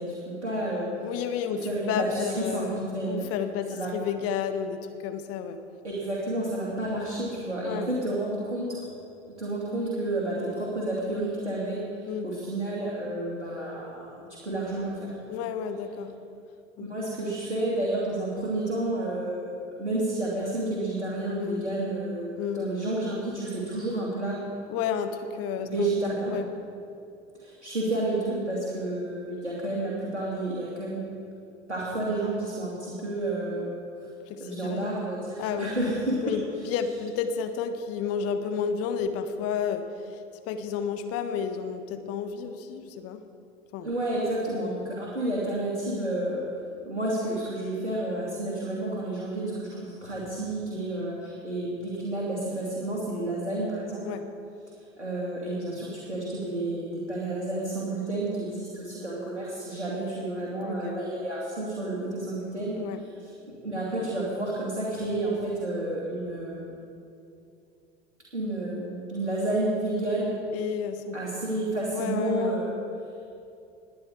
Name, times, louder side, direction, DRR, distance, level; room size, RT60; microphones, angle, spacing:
voice 1, 0.0-0.9 1.5-3.3 3.7-3.9 5.8-8.8 9.4-15.1 16.8-24.4 25.6-26.3 27.3-31.0 31.7-33.7 34.4-36.4 43.8-46.4 46.8-54.0 55.0-62.8 63.2-63.3 63.6-66.7 68.3-70.4 71.1-72.7, right 1 dB, 85° right, -6 dB, 2.9 m, -30 dB
voice 2, 1.0-2.8 3.1-5.6 7.6-7.9 12.1-12.3 15.3-16.1 16.8-17.0 21.4-21.6 22.4-22.7 24.7-25.9 26.3-26.4 34.3-34.9 35.4-35.7 36.2-40.2 40.5-43.2 43.7-43.9 44.5-44.7 54.0-54.2 60.6-61.0 62.8-63.0 70.5-71.2 71.9-72.6, left 7 dB, 45° left, 8 dB, 1.4 m, -31 dB
20.5 x 10.5 x 4.8 m, 2.6 s
figure-of-eight pair, 75°, 34 cm